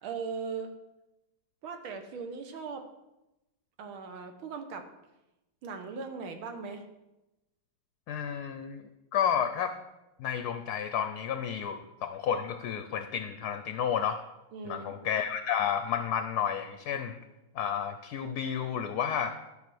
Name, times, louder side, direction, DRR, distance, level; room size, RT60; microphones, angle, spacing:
voice 1, 0.0-0.7 1.6-2.8 3.8-4.9 5.6-6.8 14.5-14.9, right 5 dB, 85° right, 6 dB, 1.9 m, -38 dB
voice 2, 8.1-8.8 9.1-9.7 10.2-14.2 14.6-17.2 17.5-19.4, left 8 dB, 70° left, 9 dB, 1.0 m, -31 dB
12.5 x 5.5 x 6.2 m, 0.95 s
omnidirectional pair, 2.2 m